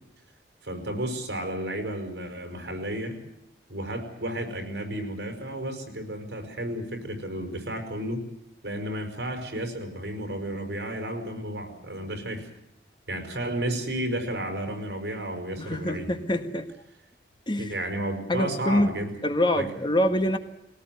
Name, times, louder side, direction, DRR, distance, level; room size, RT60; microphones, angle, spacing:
voice 1, 0.6-3.2 3.7-8.3 8.6-12.5 13.1-16.1 17.6-19.2 19.5-19.7, right 1 dB, 65° right, 5 dB, 5.7 m, -32 dB
voice 2, 15.6-16.7 17.5-17.7 18.3-20.4, left 1 dB, 25° left, 8 dB, 1.5 m, -25 dB
21.5 x 18.5 x 9.4 m, 0.82 s
head